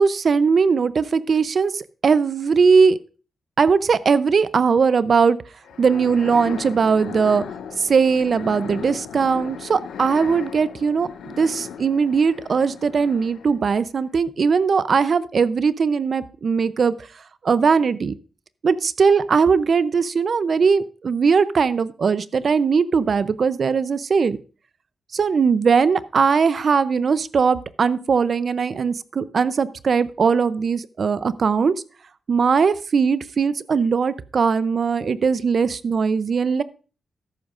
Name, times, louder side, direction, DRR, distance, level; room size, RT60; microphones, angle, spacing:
voice 1, 0.0-3.0 3.6-5.4 5.8-7.4 7.8-11.1 11.4-16.9 17.4-18.1 18.6-24.4 25.1-31.7 32.3-36.6, right 5 dB, 60° right, 15 dB, 0.6 m, -19 dB
sound 1, 5.6-13.7, left 7 dB, 90° left, 0.7 m, -36 dB
13.5 x 11.0 x 2.5 m, 0.37 s
cardioid pair, 70°, 0 cm